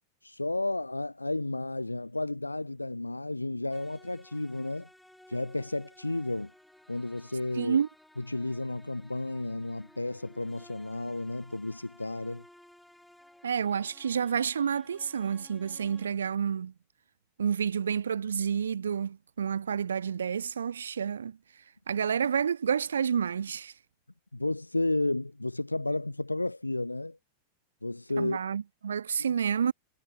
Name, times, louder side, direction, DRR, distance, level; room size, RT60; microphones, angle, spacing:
voice 1, 0.2-4.9 5.3-6.5 6.9-7.8 8.2-12.4 24.3-27.2 27.8-28.4 29.2-29.3, left 2 dB, 85° left, 0.7 m, -32 dB
sound 1, 3.7-16.1, left 1 dB, 5° left, 1.7 m, -57 dB
voice 2, 7.6-7.9 13.4-16.7 17.4-21.4 21.9-23.7 28.2-29.7, right 7 dB, 70° right, 0.4 m, -29 dB
figure-of-eight pair, 90°, 0 cm